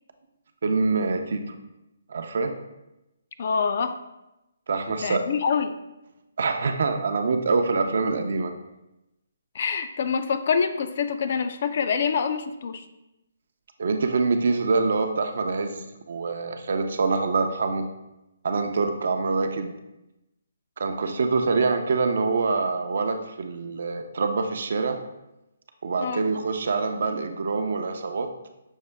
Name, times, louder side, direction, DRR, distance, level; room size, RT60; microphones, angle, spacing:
voice 1, 0.6-1.5 2.1-2.5 4.7-5.2 6.4-8.5 13.8-17.8 18.4-19.7 20.8-25.0 25.8-28.3, right 4 dB, 60° right, 6 dB, 0.5 m, -25 dB
voice 2, 3.4-3.9 5.0-5.7 9.5-12.8 26.0-26.2, left 6 dB, 50° left, 9 dB, 0.3 m, -25 dB
6.3 x 2.2 x 3.4 m, 0.94 s
hypercardioid pair, 160°, 0 cm